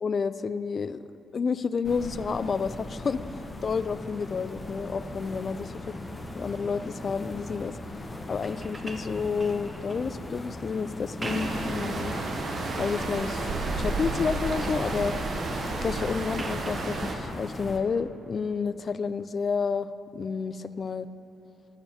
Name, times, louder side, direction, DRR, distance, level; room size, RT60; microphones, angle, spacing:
voice 1, 0.0-1.0 1.3-3.2 3.6-5.9 6.3-7.7 8.3-12.1 12.8-13.5 13.8-15.1 15.8-21.1, left 5 dB, 45° left, 14 dB, 0.3 m, -30 dB
sound 1, 1.8-17.8, left 2 dB, 20° left, 0.8 m, -39 dB
sound 2, 8.4-10.1 11.0-11.8 12.2-12.9 13.4-13.9 14.2-14.9 16.3-16.9 18.7-18.8, right 2 dB, 20° right, 0.9 m, -42 dB
sound 3, 11.2-17.1, right 3 dB, 50° right, 1.1 m, -31 dB
10.5 x 5.1 x 7.1 m, 2.8 s
cardioid pair, 90°, 0 cm